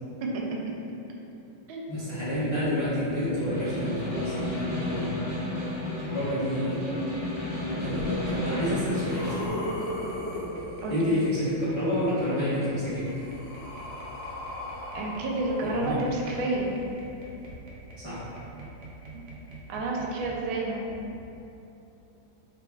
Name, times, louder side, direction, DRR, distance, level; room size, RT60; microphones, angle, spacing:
voice 1, 1.9-5.3 6.0-7.1 7.6-9.5 10.9-13.1 15.6-16.0 18.0-18.2, left 1 dB, 30° left, -14 dB, 0.7 m, -29 dB
sound 1, 2.3-20.4 20.9-21.2, equal, 70° right, 1.2 m, -46 dB
Snare drum, 3.3-9.5, left 1 dB, ahead, 1.1 m, -32 dB
sound 2, 7.9-8.0 8.6-11.4 12.6-16.5 17.4-17.5, left 1 dB, 70° left, 1.5 m, -37 dB
voice 2, 14.9-16.7 19.1-19.2 19.7-20.9, right 2 dB, 85° right, -2 dB, 1.4 m, -30 dB
4.2 x 3.3 x 2.3 m, 2.9 s
omnidirectional pair, 2.2 m